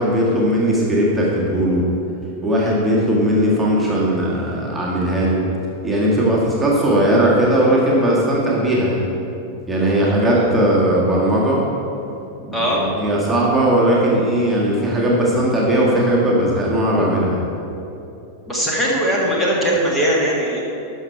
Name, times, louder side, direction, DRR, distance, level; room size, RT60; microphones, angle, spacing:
voice 1, 0.0-1.9 2.4-5.4 5.8-9.1 9.7-11.6 12.4-17.4, right 1 dB, 10° right, -5 dB, 1.7 m, -18 dB
voice 2, 18.5-20.6, equal, 10° left, -4 dB, 1.8 m, -19 dB
12.5 x 5.7 x 4.5 m, 2.8 s
figure-of-eight pair, 90°, 0 cm